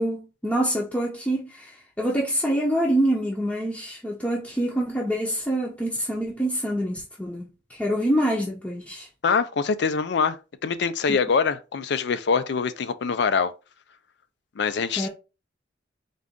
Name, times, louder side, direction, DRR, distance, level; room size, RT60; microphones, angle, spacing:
voice 1, 0.0-9.1 11.1-11.2 15.0-15.1, right 1 dB, 10° left, 0.6 m, -26 dB
voice 2, 9.2-13.5 14.6-15.1, left 5 dB, 60° left, 0.4 m, -24 dB
3.9 x 2.4 x 3.5 m
head